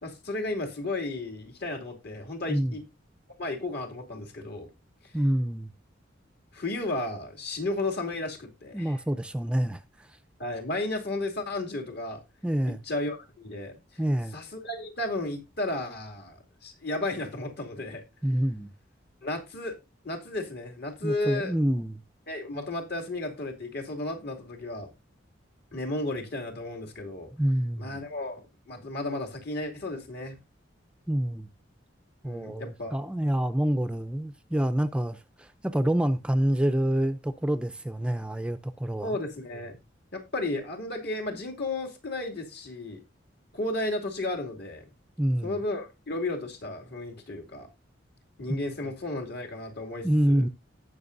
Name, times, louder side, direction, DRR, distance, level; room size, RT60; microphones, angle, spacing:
voice 1, 0.0-2.8 3.4-4.7 6.5-9.0 10.4-12.2 12.7-13.7 14.3-18.0 19.2-19.8 20.0-21.5 22.3-24.9 25.7-27.3 27.8-30.4 32.2-33.0 39.0-39.8 40.1-43.0 43.5-44.8 45.4-47.7 48.4-50.4, left 2 dB, 60° left, 2.5 m, -33 dB
voice 2, 5.1-5.7 8.7-10.2 12.4-12.8 14.0-14.4 18.2-18.7 21.0-22.0 27.3-28.0 31.1-31.5 32.2-39.1 45.2-45.6 48.5-48.6 50.0-50.5, right 1 dB, 5° right, 0.5 m, -27 dB
18.0 x 6.1 x 2.6 m
head